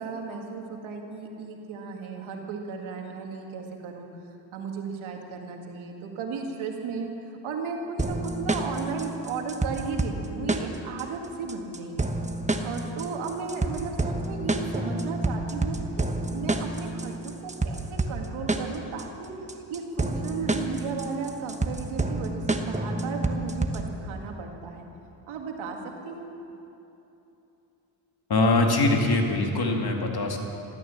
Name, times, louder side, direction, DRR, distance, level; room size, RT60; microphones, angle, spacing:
voice 1, 0.0-4.1 4.5-12.1 12.6-24.9 25.3-25.8 26.0-26.3, right 4 dB, 90° right, 2 dB, 2.0 m, -35 dB
sound 1, 8.0-24.0, right 2 dB, 15° right, 1.2 m, -29 dB
voice 2, 28.3-30.4, left 2 dB, 50° left, 2 dB, 2.4 m, -23 dB
14.5 x 13.0 x 7.3 m, 2.9 s
cardioid pair, 70°, 47 cm